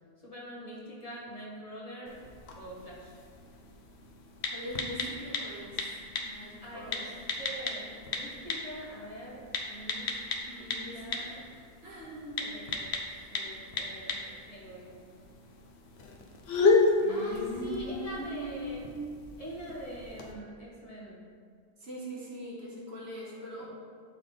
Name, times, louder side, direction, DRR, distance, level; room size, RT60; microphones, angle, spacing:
voice 1, 0.2-2.3 2.5-3.2 6.6-10.1 10.6-11.5 12.4-15.0 16.5-16.6 17.1-18.8 19.4-21.2, equal, 35° left, -6 dB, 1.5 m, -44 dB
sound 1, 2.1-20.3, left 3 dB, 90° left, 1.0 m, -34 dB
voice 2, 4.5-5.9 6.2-7.1 10.5-11.4 11.8-12.5 17.0-19.4 21.8-23.7, right 1 dB, 80° right, -5 dB, 1.8 m, -41 dB
11.5 x 4.0 x 3.3 m, 2.1 s
omnidirectional pair, 1.0 m